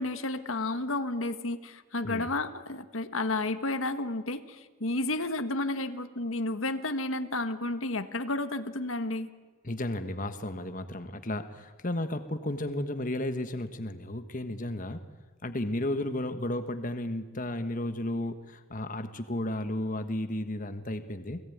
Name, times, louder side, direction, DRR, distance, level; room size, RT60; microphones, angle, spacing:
voice 1, 0.0-9.3, left 2 dB, 80° left, 10 dB, 1.6 m, -31 dB
voice 2, 9.6-15.0 15.4-21.4, left 1 dB, 40° left, 9 dB, 1.4 m, -33 dB
29.5 x 20.5 x 9.4 m, 1.3 s
head